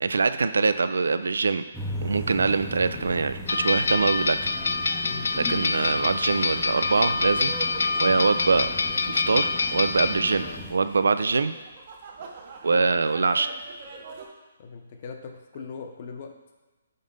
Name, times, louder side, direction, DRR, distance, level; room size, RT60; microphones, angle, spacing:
voice 1, 0.0-1.6 2.0-4.4 5.4-7.5 8.0-8.7 9.0-11.5 12.6-13.5, right 4 dB, 85° right, 11 dB, 0.4 m, -23 dB
sound 1, 1.7-10.7, left 1 dB, 5° left, 0.6 m, -38 dB
sound 2, 3.5-10.6, left 4 dB, 80° left, 0.4 m, -26 dB
sound 3, 4.5-14.3, right 5 dB, 40° right, 0.8 m, -45 dB
voice 2, 5.0-5.3 14.6-16.3, left 5 dB, 40° left, 4 dB, 0.7 m, -39 dB
5.3 x 3.9 x 5.3 m, 1.2 s
hypercardioid pair, 160°, 0 cm